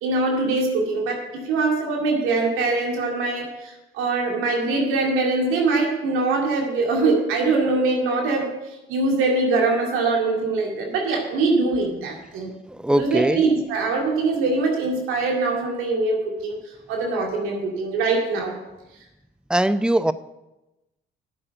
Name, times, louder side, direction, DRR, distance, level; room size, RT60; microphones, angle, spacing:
voice 1, 0.0-8.5 8.9-12.5 12.9-16.6 16.9-18.6, right 3 dB, 75° right, 0 dB, 2.3 m, -23 dB
voice 2, 12.7-13.4 19.5-20.1, right 1 dB, 5° right, 14 dB, 0.6 m, -21 dB
9.0 x 7.6 x 8.0 m, 0.98 s
hypercardioid pair, 55°, 21 cm